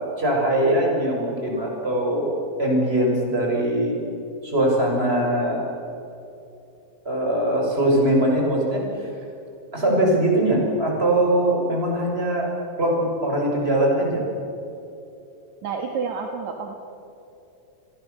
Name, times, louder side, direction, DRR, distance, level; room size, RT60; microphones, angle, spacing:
voice 1, 0.0-2.3 2.6-4.0 4.4-5.7 7.0-9.1 9.7-12.5 12.8-14.2, right 1 dB, 15° right, -1 dB, 6.2 m, -21 dB
voice 2, 15.6-16.7, right 5 dB, 60° right, 3 dB, 2.9 m, -29 dB
29.5 x 22.0 x 6.9 m, 2.8 s
omnidirectional pair, 3.9 m